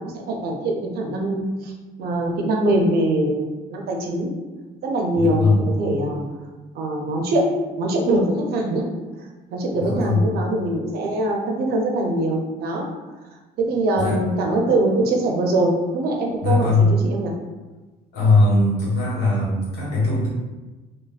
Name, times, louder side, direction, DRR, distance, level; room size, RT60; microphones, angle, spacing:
voice 1, 0.0-1.7 2.0-4.3 4.8-6.2 6.7-7.5 7.8-8.8 9.5-12.8 13.6-17.3, right 1 dB, 65° right, 1 dB, 0.6 m, -23 dB
voice 2, 5.1-5.6 9.7-10.3 14.0-14.2 16.4-16.9 18.1-20.3, left 2 dB, 80° left, -5 dB, 1.1 m, -19 dB
3.2 x 2.1 x 2.4 m, 1.2 s
cardioid pair, 110°, 17 cm